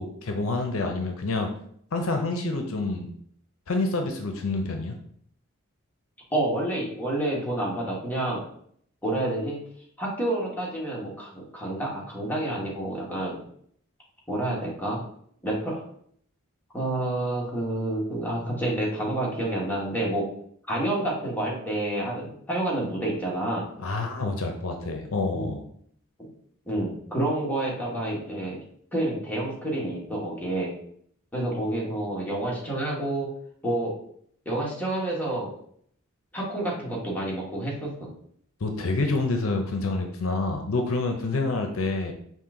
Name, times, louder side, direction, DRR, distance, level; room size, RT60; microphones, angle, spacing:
voice 1, 0.0-1.5 1.9-3.1 3.7-5.0 23.8-25.6 38.6-42.1, left 3 dB, 70° left, 4 dB, 0.6 m, -27 dB
voice 2, 6.3-8.4 9.0-9.6 10.0-13.4 14.3-15.0 15.4-15.8 16.7-20.2 20.7-23.7 25.3-25.5 26.2-26.3 26.7-28.6 28.9-30.7 31.3-33.3 33.6-33.9 34.4-35.5 36.3-38.1, right 1 dB, 10° left, -4 dB, 1.4 m, -29 dB
5.4 x 2.6 x 3.7 m, 0.65 s
head